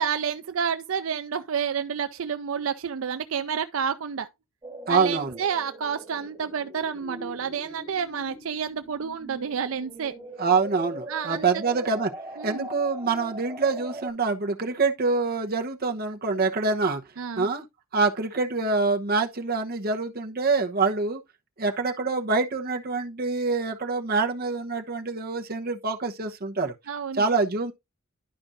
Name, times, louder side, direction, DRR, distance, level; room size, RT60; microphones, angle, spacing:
voice 1, 0.0-4.3 4.9-10.1 11.1-11.5 12.4-12.7 17.2-17.5 26.9-27.2, right 7 dB, 75° right, 0.5 m, -29 dB
sound 1, 4.6-14.1, right 1 dB, 15° right, 3.6 m, -42 dB
voice 2, 4.9-5.4 10.4-12.1 12.4-17.0 17.4-17.6 17.9-21.2 21.6-26.7 27.2-27.7, right 4 dB, 45° right, 1.0 m, -25 dB
11.5 x 5.1 x 2.6 m
head